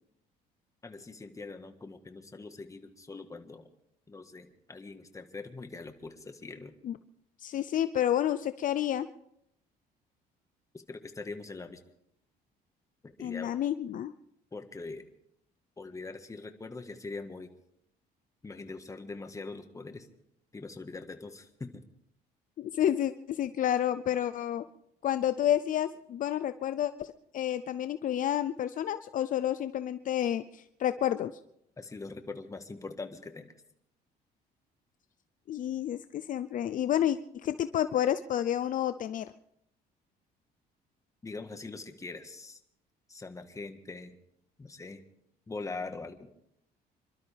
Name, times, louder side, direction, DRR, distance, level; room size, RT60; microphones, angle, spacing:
voice 1, 0.8-3.7 4.1-6.7 10.9-11.8 13.0-13.5 14.5-15.0 15.8-17.5 18.4-20.1 20.5-21.9 31.8-33.5 41.2-42.6 43.1-44.2 44.6-45.0 45.5-46.3, left 3 dB, 20° left, 7 dB, 1.6 m, -42 dB
voice 2, 7.4-9.1 13.2-14.1 22.6-24.6 25.0-31.3 35.5-39.3, left 11 dB, 50° left, 12 dB, 0.6 m, -30 dB
27.0 x 12.5 x 3.5 m, 0.73 s
cardioid pair, 110°, 17 cm